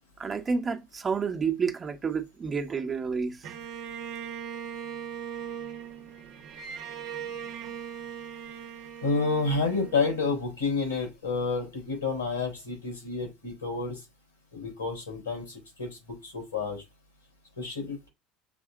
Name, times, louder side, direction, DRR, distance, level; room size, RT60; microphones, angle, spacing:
voice 1, 0.2-3.4, right 5 dB, 30° right, 1.4 m, -29 dB
Bowed string instrument, 3.4-10.7, right 8 dB, 55° right, 1.2 m, -39 dB
voice 2, 9.0-13.9 14.5-16.0 16.2-16.8 17.6-18.1, left 4 dB, 85° left, 4.8 m, -29 dB
7.1 x 3.5 x 5.2 m
figure-of-eight pair, 65°, 0 cm